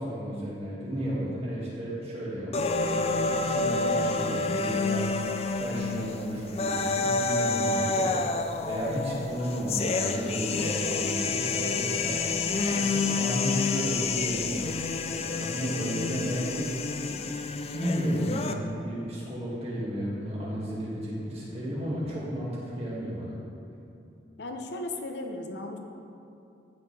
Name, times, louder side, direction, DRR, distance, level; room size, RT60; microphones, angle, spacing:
voice 1, 0.0-8.1 8.7-14.5 15.1-16.8 17.0-17.2 17.7-23.4, equal, 35° right, -7 dB, 2.1 m, -33 dB
sound 1, 2.5-18.5, left 3 dB, 35° left, 0.3 m, -29 dB
voice 2, 24.4-25.8, left 2 dB, 70° left, 4 dB, 0.7 m, -36 dB
14.5 x 5.0 x 3.4 m, 2.6 s
head